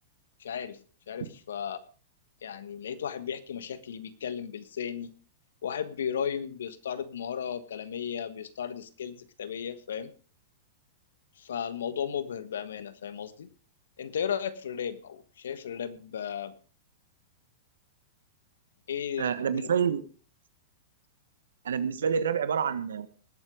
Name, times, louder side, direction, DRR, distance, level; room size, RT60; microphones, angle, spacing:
voice 1, 0.4-0.8 1.1-1.8 2.4-5.1 5.6-10.1 11.4-13.5 14.0-16.5 18.9-19.7, left 8 dB, 80° left, 13 dB, 1.4 m, -35 dB
voice 2, 19.2-20.0 21.6-23.1, right 7 dB, 85° right, 14 dB, 1.4 m, -27 dB
19.5 x 7.6 x 5.2 m, 0.39 s
hypercardioid pair, 120°, 0 cm